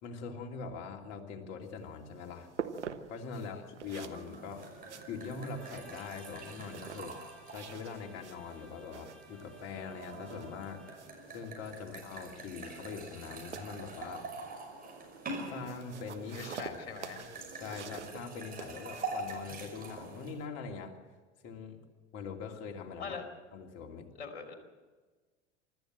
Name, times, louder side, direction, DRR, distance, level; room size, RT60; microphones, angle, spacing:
voice 1, 0.0-2.5 3.1-4.7 5.1-7.2 7.5-10.8 11.3-14.2 15.5-16.8 17.5-21.0 21.4-21.8 22.1-23.2 23.5-24.1, left 5 dB, 45° left, 2 dB, 2.9 m, -43 dB
sound 1, 1.6-20.5, right 7 dB, 80° right, 1.2 m, -48 dB
sound 2, 3.8-20.3, right 3 dB, 25° right, 5.8 m, -45 dB
Bowed string instrument, 5.4-11.2, right 1 dB, ahead, 3.1 m, -58 dB
voice 2, 16.3-17.3 23.0-23.2 24.2-24.5, left 6 dB, 65° left, 4 dB, 2.9 m, -42 dB
25.0 x 13.5 x 7.7 m, 1.4 s
figure-of-eight pair, 75°, 34 cm